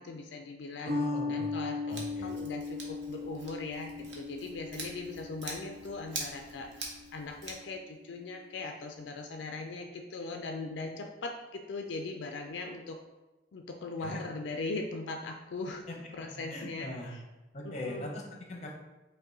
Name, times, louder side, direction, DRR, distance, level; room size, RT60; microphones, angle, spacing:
voice 1, 0.0-1.0 1.3-13.0 13.5-15.8 16.1-17.2 17.6-18.1, left 3 dB, 75° left, 3 dB, 0.4 m, -40 dB
voice 2, 0.8-1.5 1.9-2.3 14.0-14.2 15.9-16.0 16.5-17.1 17.5-18.8, left 1 dB, 35° left, 0 dB, 0.7 m, -40 dB
sound 1, 0.9-7.6, left 3 dB, 55° right, 1.4 m, -38 dB
Scissors, 1.9-7.5, right 3 dB, 75° right, 0.9 m, -45 dB
5.2 x 2.2 x 3.8 m, 1.1 s
head